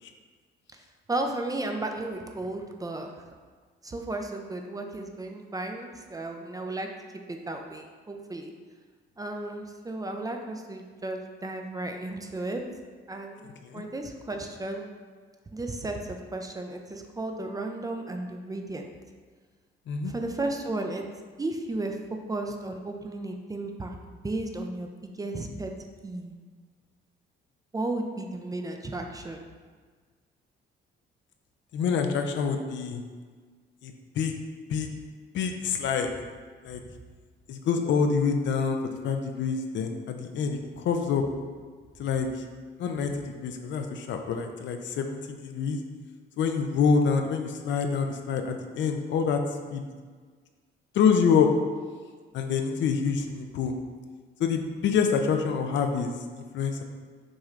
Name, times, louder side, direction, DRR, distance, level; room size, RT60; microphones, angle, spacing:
voice 1, 1.1-3.1 3.8-6.9 7.3-8.5 9.2-12.6 13.1-14.9 15.5-18.9 20.0-21.0 21.4-22.0 22.3-25.7 26.0-26.3 27.7-29.4, right 2 dB, 20° right, 3 dB, 0.4 m, -34 dB
voice 2, 31.7-33.0 33.8-34.3 34.7-34.9 35.3-36.1 36.6-36.8 37.5-38.8 39.0-41.2 42.0-42.3 42.8-43.1 43.4-45.8 46.4-49.4 49.7-49.8 50.9-51.5 52.3-53.7 54.4-56.1 56.5-56.8, left 6 dB, 70° left, 5 dB, 0.5 m, -26 dB
6.1 x 3.2 x 2.5 m, 1.5 s
cardioid pair, 90°, 20 cm